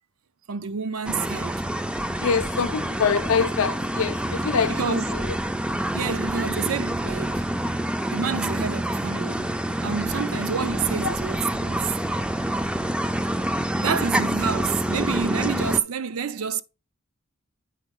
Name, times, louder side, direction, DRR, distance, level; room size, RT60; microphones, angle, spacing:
voice 1, 0.5-1.6 4.7-5.0 5.9-7.4 8.1-12.0 13.8-16.6, right 6 dB, 85° right, 0.5 m, -29 dB
sound 1, 1.0-15.8, right 1 dB, 5° right, 0.3 m, -27 dB
voice 2, 2.2-5.4 10.1-10.3 11.0-11.1, left 6 dB, 80° left, 0.5 m, -25 dB
9.2 x 4.0 x 3.6 m
head